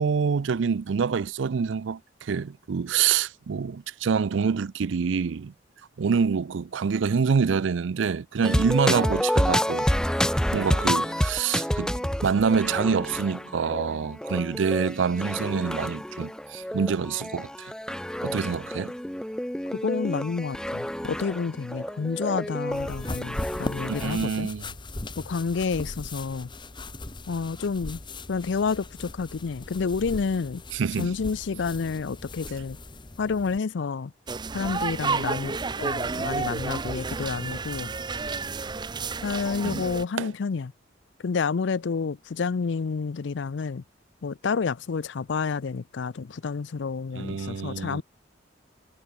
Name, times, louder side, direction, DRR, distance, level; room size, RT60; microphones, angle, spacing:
voice 1, 0.0-5.5 6.0-9.9 10.5-17.7 18.2-18.9 23.9-24.7 30.7-31.1 39.6-39.9 40.2-40.3 47.2-48.0, right 6 dB, 75° right, 0.4 m, -26 dB
sound 1, 8.4-24.1, equal, 5° left, 1.1 m, -29 dB
voice 2, 19.7-24.5 25.2-26.5 27.3-28.0 28.3-30.6 31.0-32.8 33.2-34.1 34.5-37.9 39.2-40.7 41.2-43.8 44.2-48.0, left 5 dB, 70° left, 0.5 m, -29 dB
sound 2, 22.7-33.6, left 2 dB, 25° left, 1.2 m, -39 dB
sound 3, 34.3-40.0, right 4 dB, 25° right, 0.6 m, -31 dB
head